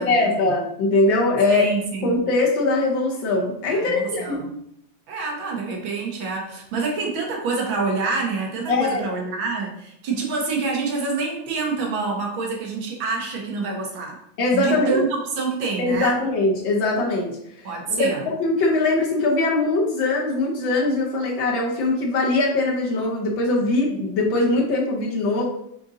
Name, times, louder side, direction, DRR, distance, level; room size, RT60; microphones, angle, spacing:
voice 1, 0.0-1.7 2.0-4.4 8.7-9.0 14.4-15.0 15.8-17.4 17.9-25.5, left 2 dB, 75° left, -2 dB, 1.6 m, -21 dB
voice 2, 1.5-2.2 3.7-4.5 5.1-14.2 14.5-16.2 17.6-18.3, right 4 dB, 90° right, 0 dB, 1.8 m, -27 dB
5.1 x 3.7 x 2.6 m, 0.74 s
omnidirectional pair, 2.1 m